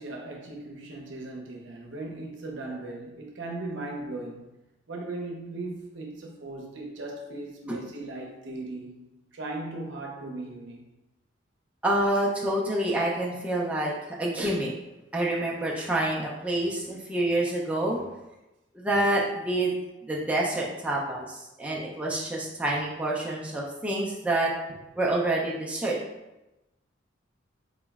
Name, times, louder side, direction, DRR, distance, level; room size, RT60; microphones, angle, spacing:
voice 1, 0.0-4.5 4.9-8.9 9.3-10.8, right 2 dB, 70° right, 0 dB, 0.7 m, -38 dB
voice 2, 11.8-14.7 15.1-18.0 18.7-19.7 20.0-24.5 25.0-26.0, right 1 dB, 5° right, -4 dB, 0.4 m, -27 dB
3.9 x 3.0 x 2.3 m, 0.98 s
head